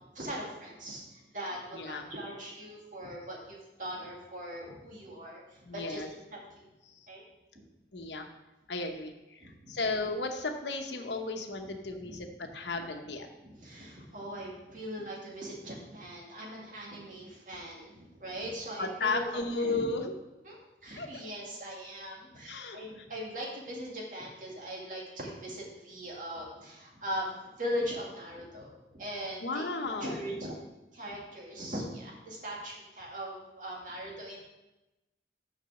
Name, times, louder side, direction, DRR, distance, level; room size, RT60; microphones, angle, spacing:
voice 1, 0.0-6.0 6.3-6.7 7.1-7.2 9.4-9.8 12.0-12.2 13.4-19.3 19.6-19.9 20.4-29.6 30.0-30.5 30.9-34.4, equal, 45° right, -3 dB, 2.1 m, -40 dB
voice 2, 1.7-2.1 5.6-6.1 6.9-7.0 7.9-8.3 8.7-12.3 12.5-13.3 18.8-20.1 21.0-21.2 22.5-22.8 29.4-30.2, left 3 dB, 85° left, 4 dB, 1.0 m, -34 dB
6.2 x 5.9 x 7.1 m, 1.0 s
head